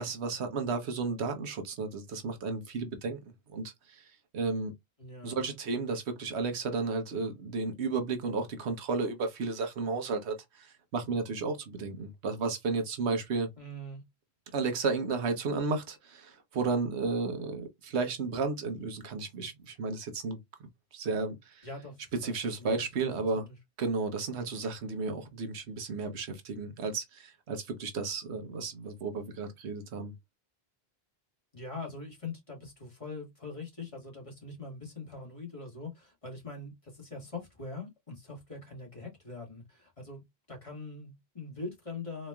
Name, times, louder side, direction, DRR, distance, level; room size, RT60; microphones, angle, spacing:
voice 1, 0.0-3.2 3.5-4.0 4.3-4.7 5.2-13.5 14.5-20.4 20.9-21.7 22.2-23.5 23.8-30.1, right 4 dB, 90° right, 1.2 m, -33 dB
voice 2, 5.0-5.5 13.6-14.0 21.6-23.5 31.5-40.2 40.5-42.3, left 3 dB, 30° left, 1.9 m, -43 dB
4.1 x 3.0 x 2.2 m
omnidirectional pair, 1.1 m